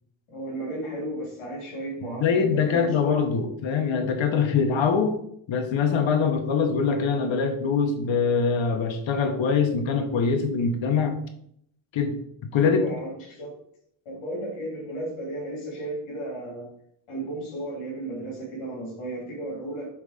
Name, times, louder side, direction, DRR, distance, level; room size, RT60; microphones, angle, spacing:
voice 1, 0.3-3.2 12.7-13.6 14.0-16.7 17.1-19.9, right 1 dB, 85° left, -4 dB, 3.0 m, -34 dB
voice 2, 2.1-5.2 5.5-11.2 11.9-12.2 12.5-12.8, left 5 dB, 65° left, 6 dB, 1.2 m, -23 dB
6.1 x 4.0 x 5.0 m, 0.69 s
cardioid pair, 95°, 49 cm